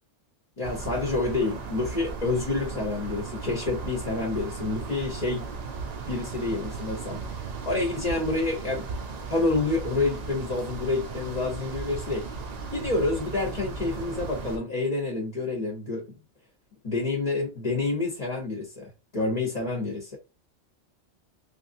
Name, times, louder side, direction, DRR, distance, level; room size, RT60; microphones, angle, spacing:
voice 1, 0.6-5.5 6.1-7.2 7.7-8.9 9.3-12.3 12.7-16.2 16.8-20.2, left 3 dB, 35° left, 0.9 m, -28 dB
sound 1, 0.6-14.6, right 4 dB, 45° right, 0.6 m, -36 dB
3.2 x 2.4 x 2.6 m
omnidirectional pair, 1.2 m